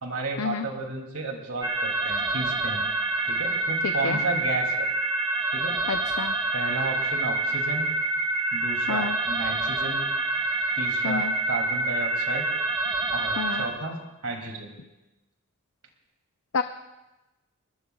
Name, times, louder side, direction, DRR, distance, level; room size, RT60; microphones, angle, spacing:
voice 1, 0.0-2.8 3.3-4.9 5.5-5.8 6.5-7.9 8.5-10.0 10.8-12.5 13.1-14.7, right 3 dB, 80° right, 2 dB, 2.8 m, -33 dB
sound 1, 1.6-13.7, right 2 dB, 15° right, 1.5 m, -27 dB
voice 2, 3.8-4.2 5.9-6.3 8.9-9.2 11.0-11.3 13.4-13.6 16.5-16.6, left 5 dB, 80° left, 8 dB, 0.6 m, -29 dB
25.0 x 21.0 x 2.4 m, 1.0 s
head